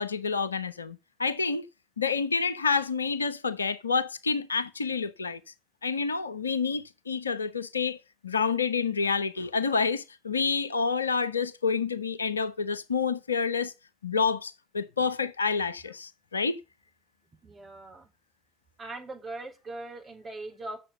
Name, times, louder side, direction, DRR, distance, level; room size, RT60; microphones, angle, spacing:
voice 1, 0.0-1.6 2.0-5.4 5.8-8.0 8.2-13.7 14.0-16.6, left 5 dB, 85° left, 0.5 m, -28 dB
voice 2, 17.4-18.1 18.8-20.8, right 2 dB, 35° right, 3.8 m, -40 dB
7.6 x 6.5 x 6.7 m
figure-of-eight pair, 55°, 0 cm